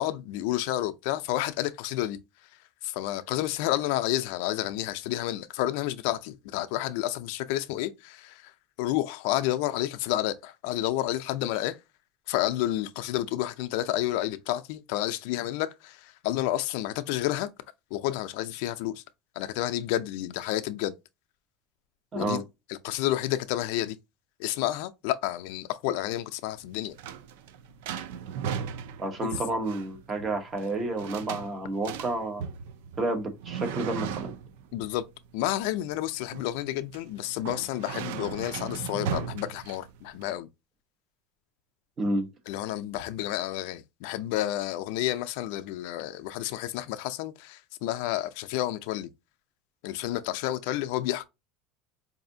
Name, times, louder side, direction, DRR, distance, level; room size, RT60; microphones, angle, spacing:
voice 1, 0.0-2.2 2.8-8.5 8.8-11.8 12.3-17.5 17.9-19.0 19.4-20.9 22.1-22.4 22.7-24.0 24.4-26.9 29.2-29.3 34.7-35.0 35.3-40.5 42.5-49.1 49.8-51.2, left 14 dB, 65° left, 0.4 m, -30 dB
voice 2, 22.1-22.4 29.0-32.4 33.0-34.3 42.0-42.3, right 2 dB, 25° right, 0.9 m, -30 dB
sound 1, 26.6-40.2, right 7 dB, 80° right, 0.4 m, -37 dB
4.9 x 2.6 x 2.6 m
cardioid pair, 160°, 0 cm